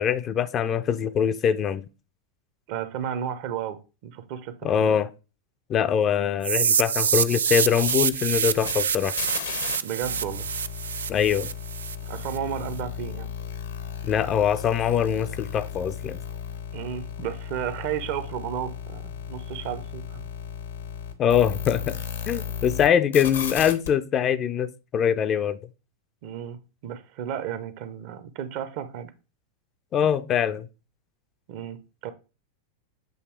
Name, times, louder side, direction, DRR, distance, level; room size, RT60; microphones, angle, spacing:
voice 1, 0.0-1.9 4.6-5.1 5.7-9.1 11.1-11.5 14.0-16.2 21.2-22.0 22.3-25.6 29.9-30.7, left 8 dB, 30° left, 0.4 m, -23 dB
voice 2, 2.7-5.0 9.8-10.5 12.1-13.3 16.7-20.3 26.2-29.1 31.5-32.1, right 9 dB, 45° right, 0.7 m, -33 dB
sound 1, 6.4-12.4, right 7 dB, 65° right, 0.3 m, -26 dB
sound 2, 7.3-9.8 10.0-22.9 23.1-23.9, left 8 dB, 70° left, 0.9 m, -35 dB
7.9 x 3.0 x 4.5 m
figure-of-eight pair, 90°, 0 cm